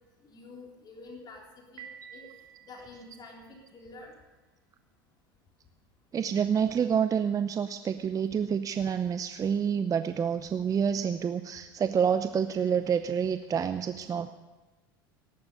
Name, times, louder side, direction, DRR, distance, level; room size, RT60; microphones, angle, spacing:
voice 1, 0.3-2.2 2.6-4.1, left 3 dB, 35° left, 0 dB, 3.5 m, -48 dB
Piano, 1.8-3.7, right 9 dB, 50° right, 2.9 m, -50 dB
voice 2, 6.1-14.3, right 7 dB, 30° right, 10 dB, 0.7 m, -28 dB
18.0 x 11.5 x 6.8 m, 1.2 s
hypercardioid pair, 80°, 12 cm